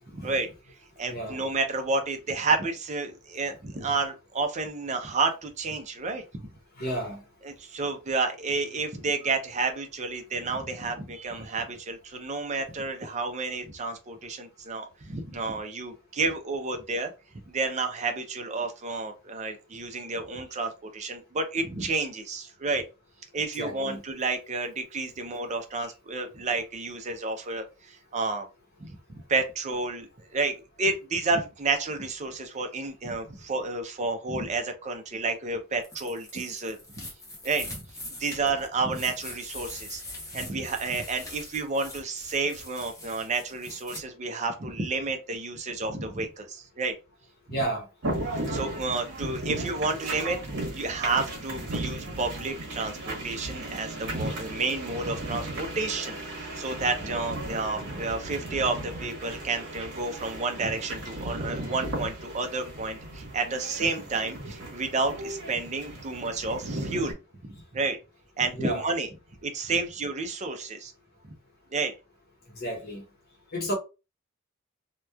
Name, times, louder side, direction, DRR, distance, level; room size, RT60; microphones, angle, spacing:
voice 1, 0.1-0.5 1.0-6.5 7.4-17.1 17.5-22.8 23.3-28.5 28.8-37.0 37.4-37.7 38.2-40.0 40.3-47.0 47.5-47.6 48.2-50.4 50.7-67.2 67.4-68.0 68.4-69.1 69.4-70.9 71.2-71.3 71.7-71.9, right 3 dB, 30° right, 0.5 m, -30 dB
voice 2, 1.1-1.4 6.8-7.2 23.6-24.0 47.5-47.9 68.5-68.9 72.6-73.0 73.5-73.7, right 1 dB, 45° left, 0.9 m, -31 dB
sound 1, 35.8-44.0, left 2 dB, 15° left, 0.7 m, -42 dB
sound 2, 48.0-67.1, right 1 dB, 55° right, 1.1 m, -36 dB
2.9 x 2.2 x 2.2 m
head